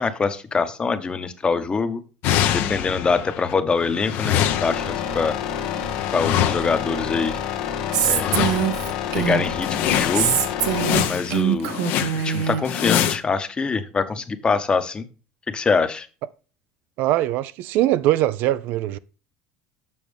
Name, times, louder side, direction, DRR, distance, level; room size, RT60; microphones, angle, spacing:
voice 1, 0.0-2.0 2.5-5.4 6.1-7.4 8.0-8.4 9.1-10.4 11.1-12.0 12.2-15.0 15.5-16.1, left 4 dB, 25° left, 0.9 m, -24 dB
sound 1, 2.2-3.5 3.8-7.0 8.0-8.9 9.3-9.4 9.6-13.2, left 10 dB, 65° left, 0.8 m, -25 dB
sound 2, 4.5-11.0, left 8 dB, 85° left, 1.1 m, -28 dB
Female speech woman speaking, 7.9-9.6 10.1-12.6, right 10 dB, 85° right, 0.9 m, -23 dB
voice 2, 17.0-19.0, right 14 dB, 65° right, 0.4 m, -21 dB
7.0 x 6.0 x 3.4 m
supercardioid pair, 90°, 4 cm